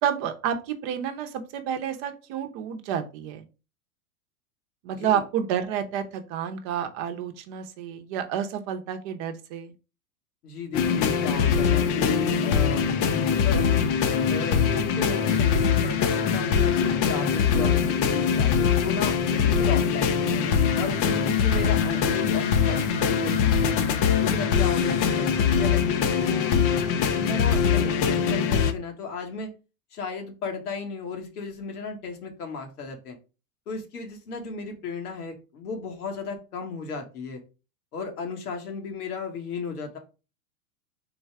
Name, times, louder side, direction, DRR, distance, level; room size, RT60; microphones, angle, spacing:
voice 1, 0.0-3.4 4.8-9.7, right 9 dB, 50° right, 7 dB, 0.8 m, -30 dB
voice 2, 10.4-13.9 14.3-20.3 20.8-23.6 24.2-26.6 27.1-29.5 29.9-33.2 33.7-37.4 37.9-40.0, left 5 dB, 85° left, 3 dB, 1.4 m, -34 dB
sound 1, 10.7-28.7, left 7 dB, 30° left, 0.4 m, -23 dB
3.9 x 2.3 x 4.5 m, 0.32 s
hypercardioid pair, 110°, 45 cm